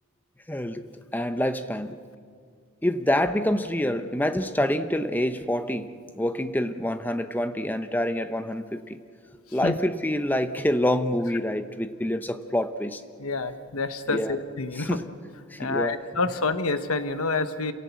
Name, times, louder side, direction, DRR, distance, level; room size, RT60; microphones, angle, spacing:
voice 1, 0.5-2.0 2.8-9.0 9.5-13.0 14.1-14.3 14.7-15.1 15.5-16.0, left 1 dB, 10° left, 10 dB, 0.8 m, -27 dB
voice 2, 13.2-15.0 15.6-17.7, left 3 dB, 80° left, 10 dB, 1.1 m, -28 dB
28.5 x 17.0 x 8.3 m, 2.1 s
head